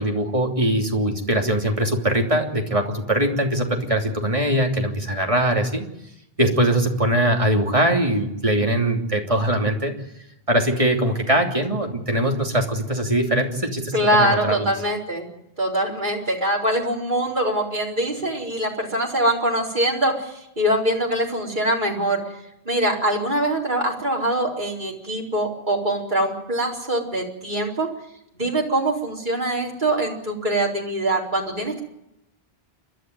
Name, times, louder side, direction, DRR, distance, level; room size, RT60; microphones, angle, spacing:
voice 1, 0.0-5.8 6.4-9.9 10.5-14.7, right 1 dB, 30° right, 2 dB, 3.2 m, -21 dB
voice 2, 13.9-15.3 15.6-22.2 22.6-27.9 28.4-31.8, right 1 dB, 50° right, -1 dB, 4.7 m, -23 dB
29.0 x 12.5 x 9.3 m, 0.82 s
omnidirectional pair, 1.0 m